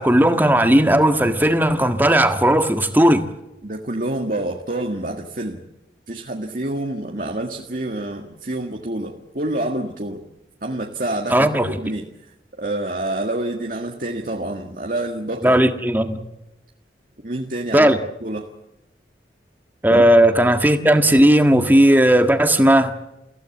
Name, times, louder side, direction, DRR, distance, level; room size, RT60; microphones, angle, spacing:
voice 1, 0.0-3.2 11.3-11.7 15.4-16.2 17.7-18.0 19.8-22.9, right 1 dB, 10° right, 1.7 m, -15 dB
voice 2, 3.6-5.6 6.1-10.2 10.6-11.5 11.8-12.0 12.6-15.6 17.2-17.9 18.2-18.5 19.9-20.0, right 1 dB, 50° right, 1.8 m, -27 dB
30.0 x 16.0 x 7.3 m
head